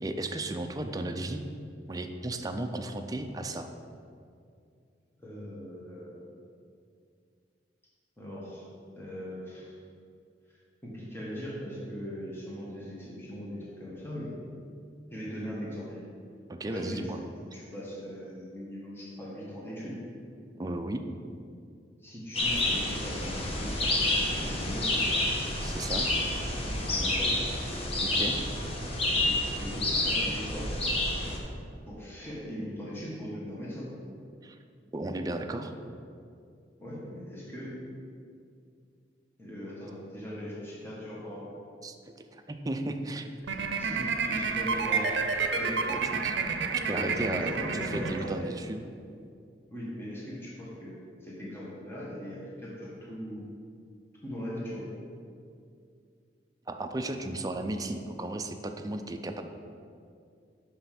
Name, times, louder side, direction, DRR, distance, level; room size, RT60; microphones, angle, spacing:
voice 1, 0.0-1.4 1.9-3.7 16.5-17.2 20.5-21.0 25.6-26.1 28.0-28.4 28.7-28.8 34.4-34.6 34.9-35.7 41.8-43.3 43.9-44.2 45.9-46.3 46.9-48.9 56.7-59.4, right 1 dB, 20° right, 5 dB, 0.4 m, -35 dB
voice 2, 5.2-6.1 8.2-8.7 8.9-9.7 10.8-14.3 15.1-16.0 16.7-17.2 17.5-20.0 22.0-25.0 26.7-27.3 29.1-30.7 31.9-33.9 36.8-37.7 39.4-41.5 43.8-45.1 45.5-45.8 46.8-48.5 49.7-51.0 51.2-53.4 54.2-54.9, equal, 15° left, -6 dB, 1.5 m, -40 dB
sound 1, 22.3-31.4, left 1 dB, 35° left, 1.1 m, -29 dB
sound 2, 43.4-48.7, right 4 dB, 85° right, 0.6 m, -30 dB
6.0 x 5.6 x 5.8 m, 2.3 s
head